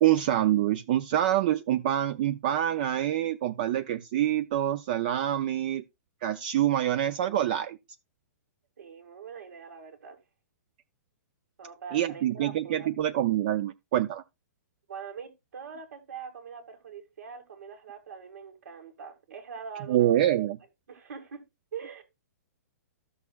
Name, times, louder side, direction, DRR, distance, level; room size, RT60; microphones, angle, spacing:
voice 1, 0.0-5.8 6.2-7.8 11.9-14.2 19.9-20.6, right 12 dB, 30° right, 0.4 m, -26 dB
voice 2, 8.8-10.2 11.6-12.9 14.9-20.3 20.9-21.4 21.7-22.0, right 6 dB, 65° right, 2.0 m, -43 dB
14.0 x 6.4 x 2.3 m
hypercardioid pair, 170°, 9 cm